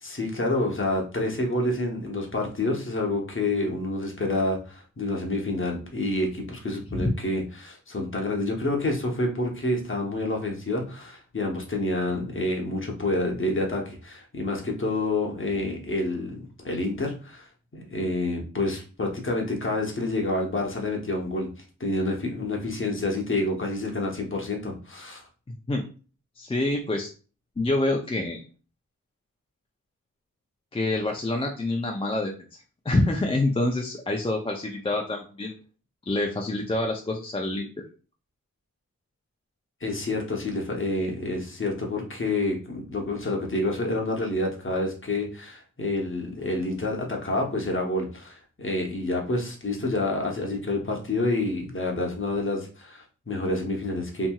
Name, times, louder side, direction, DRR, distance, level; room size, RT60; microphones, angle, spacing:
voice 1, 0.0-21.5 21.8-25.2 39.8-54.3, left 2 dB, 35° left, 1 dB, 0.9 m, -28 dB
voice 2, 25.5-25.8 26.4-27.1 27.6-28.4 30.7-32.3 32.8-35.6 36.1-37.7, left 2 dB, 15° left, 1 dB, 0.4 m, -26 dB
2.8 x 2.6 x 2.3 m, 0.36 s
cardioid pair, 55°, 34 cm